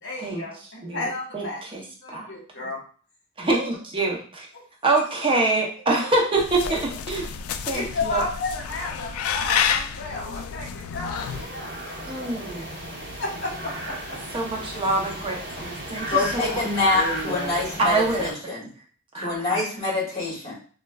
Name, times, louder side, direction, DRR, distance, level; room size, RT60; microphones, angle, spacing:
voice 1, 0.0-2.8 3.5-3.7 4.5-4.6 6.0-6.1 6.7-6.8 7.7-12.8 13.2-14.4 16.4-16.6 16.9-17.9, left 2 dB, 55° left, -1 dB, 1.1 m, -33 dB
voice 2, 1.3-1.8 2.1-2.3 3.4-4.5 4.8-6.8 7.1-7.3 7.6-8.2 12.1-12.7 14.3-16.6 17.8-18.3 19.1-19.6, right 2 dB, 25° right, -1 dB, 0.6 m, -25 dB
sound 1, 6.4-11.4, left 7 dB, 90° left, 0.3 m, -29 dB
sound 2, 11.1-18.3, equal, 55° right, 0.9 m, -35 dB
voice 3, 16.1-18.7 19.1-20.5, left 2 dB, 30° left, -5 dB, 1.5 m, -25 dB
4.2 x 2.2 x 2.2 m, 0.43 s
head